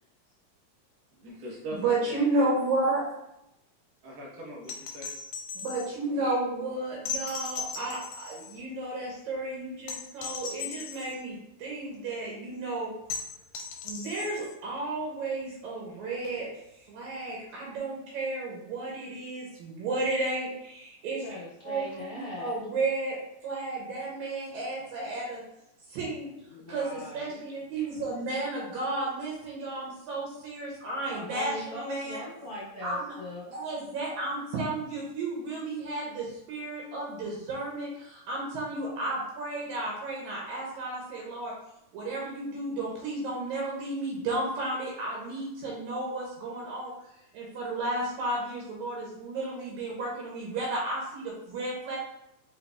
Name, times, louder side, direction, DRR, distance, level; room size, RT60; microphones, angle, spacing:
voice 1, 1.1-2.7 4.0-5.1, equal, 55° right, -4 dB, 1.1 m, -41 dB
voice 2, 1.7-3.0 5.6-12.9 13.8-16.5 16.9-21.2 21.6-22.1 22.4-23.2 23.4-25.4 25.9-26.3 26.7-32.2 32.8-33.1 33.5-41.5 41.9-46.9 47.3-52.0, right 2 dB, 80° right, -3 dB, 2.2 m, -32 dB
sound 1, 4.6-5.9 7.1-8.6 9.9-11.2 13.1-14.5 16.4-16.5, left 5 dB, 85° left, 2.0 m, -38 dB
voice 3, 21.2-22.5 26.5-27.4 31.1-33.5, left 2 dB, 65° left, -9 dB, 0.8 m, -40 dB
4.7 x 4.1 x 2.3 m, 0.85 s
omnidirectional pair, 3.3 m